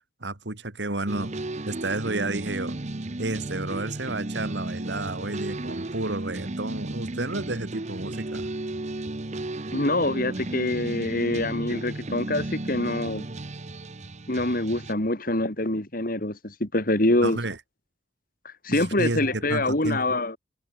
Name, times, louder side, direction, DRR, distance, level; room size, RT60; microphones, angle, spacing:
voice 1, 0.2-1.3 1.7-2.8 3.2-8.5 17.2-17.6 18.7-20.2, right 2 dB, 70° right, 2.5 m, -31 dB
sound 1, 1.1-14.9, right 2 dB, 40° right, 1.0 m, -34 dB
voice 2, 9.7-13.2 14.3-17.4 18.4-20.4, left 1 dB, 50° left, 3.0 m, -25 dB
head